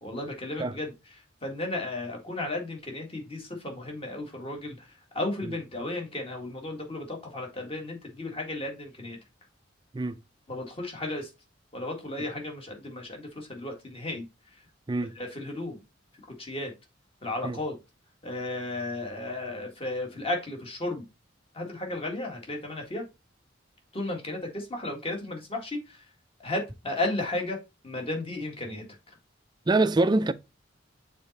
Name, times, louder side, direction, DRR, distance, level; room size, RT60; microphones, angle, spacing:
voice 1, 0.0-0.9 1.4-4.9 5.1-9.2 10.5-11.3 11.7-14.2 15.2-15.8 16.4-16.7 17.2-17.7 18.2-21.0 21.5-23.0 23.9-26.0 26.4-27.6 27.8-28.8, left 2 dB, 30° left, 1.8 m, -34 dB
voice 2, 29.7-30.3, right 2 dB, 20° right, 0.4 m, -25 dB
6.8 x 4.1 x 4.0 m
head